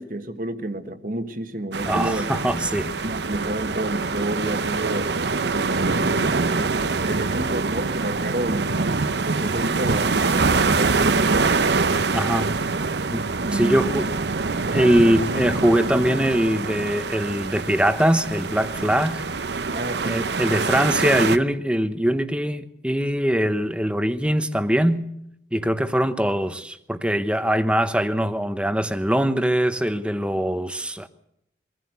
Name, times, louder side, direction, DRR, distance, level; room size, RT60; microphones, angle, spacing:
voice 1, 0.0-2.3 3.0-5.1 5.5-8.8 9.2-11.7 13.4-14.0 14.7-14.9 19.7-20.2, right 1 dB, 50° right, 1.5 m, -30 dB
sound 1, 1.7-21.4, right 4 dB, 75° right, 0.8 m, -24 dB
voice 2, 1.9-2.9 12.1-12.6 13.1-14.1 14.7-19.2 20.0-25.1 25.5-31.1, equal, 5° right, 0.9 m, -22 dB
23.0 x 15.0 x 8.1 m
head